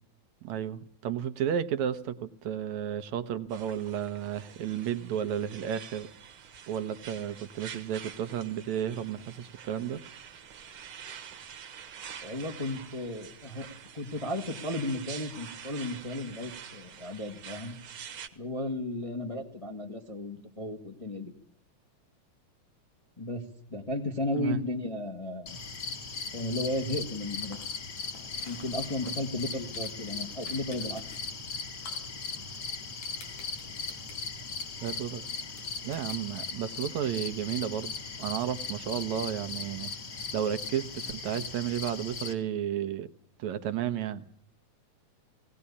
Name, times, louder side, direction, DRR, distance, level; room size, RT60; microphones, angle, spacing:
voice 1, 0.4-6.1 6.7-10.0 24.3-24.6 34.8-35.3 35.8-39.9 40.3-43.1 43.4-44.2, right 9 dB, 75° right, 11 dB, 2.3 m, -32 dB
sound 1, 3.5-18.3, right 8 dB, 50° right, 2.0 m, -46 dB
voice 2, 12.2-17.8 18.3-21.3 23.2-23.4 23.7-25.6 26.3-27.6 28.4-31.0, left 1 dB, 15° left, 3 dB, 1.1 m, -34 dB
sound 2, 25.5-42.3, left 4 dB, 40° left, 2.0 m, -38 dB
sound 3, 25.9-36.6, left 3 dB, 90° left, 6.0 m, -54 dB
18.5 x 18.0 x 8.5 m, 0.67 s
omnidirectional pair, 3.5 m